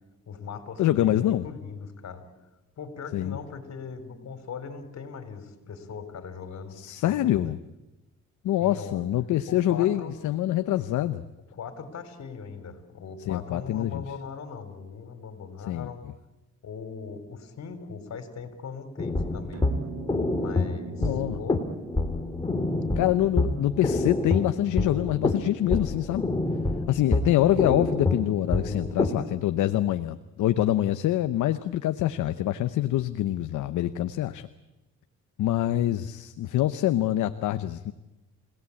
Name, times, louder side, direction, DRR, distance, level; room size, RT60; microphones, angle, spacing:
voice 1, 0.3-2.2 2.8-6.8 7.0-7.4 8.6-9.0 9.5-10.1 11.5-16.0 16.6-19.7 20.4-21.6, left 5 dB, 60° left, 8 dB, 4.0 m, -40 dB
voice 2, 0.8-1.4 3.1-3.4 6.8-7.6 8.4-11.2 13.3-14.0 15.7-15.9 21.0-21.4 23.0-26.2 26.9-34.4 35.4-37.9, left 13 dB, 80° left, 10 dB, 0.9 m, -25 dB
sound 1, 19.0-29.2, left 2 dB, 15° left, 2.9 m, -27 dB
sound 2, 19.5-24.2, right 9 dB, 60° right, 1.7 m, -45 dB
29.5 x 17.5 x 8.5 m, 1.0 s
cardioid pair, 90°, 30 cm